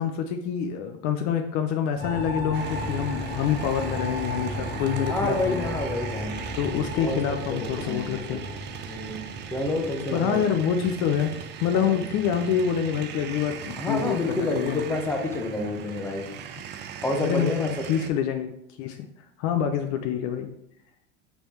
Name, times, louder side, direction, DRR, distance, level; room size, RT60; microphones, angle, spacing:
voice 1, 0.0-5.8 6.6-8.4 10.1-11.3 11.6-14.8 17.2-18.5 18.8-19.1 19.4-20.5, left 8 dB, 50° left, 6 dB, 0.5 m, -26 dB
sound 1, 2.0-11.6, left 1 dB, 25° left, 1.2 m, -35 dB
sound 2, 2.5-18.1, right 8 dB, 30° right, 0.4 m, -39 dB
voice 2, 5.1-6.3 7.0-7.2 7.5-8.4 8.9-9.2 9.5-10.4 11.7-12.0 13.8-16.2 17.0-17.7 18.0-18.1, left 2 dB, 5° left, 2 dB, 0.7 m, -28 dB
4.0 x 3.4 x 3.0 m, 0.75 s
hypercardioid pair, 95°, 36 cm